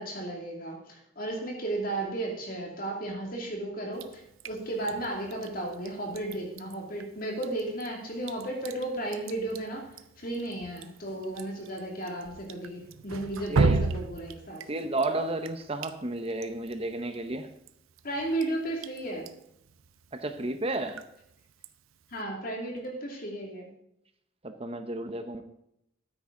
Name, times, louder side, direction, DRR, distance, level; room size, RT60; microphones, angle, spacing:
voice 1, 0.0-14.6 18.0-19.3 22.1-23.7, right 1 dB, 45° left, 2.5 m, -34 dB
Drip, 3.9-22.2, right 4 dB, 80° right, 0.7 m, -37 dB
voice 2, 13.5-13.8 14.7-17.5 20.1-21.0 24.4-25.4, right 2 dB, 30° right, 0.8 m, -32 dB
13.0 x 9.6 x 3.8 m
head